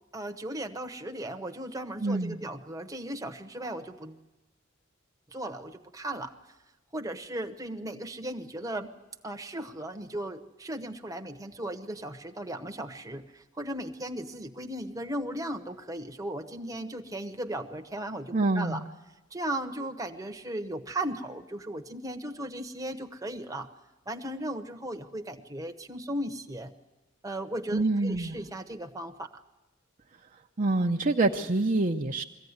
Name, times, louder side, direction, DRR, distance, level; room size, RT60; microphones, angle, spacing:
voice 1, 0.1-4.2 5.3-6.3 6.9-8.9 9.2-18.8 19.3-23.7 24.1-26.7 27.2-29.3, right 1 dB, 15° right, 5 dB, 1.1 m, -36 dB
voice 2, 2.0-2.4 18.3-18.8 27.7-28.4 30.6-32.2, right 2 dB, 40° right, 2 dB, 0.8 m, -26 dB
22.0 x 15.5 x 9.7 m, 1.1 s
head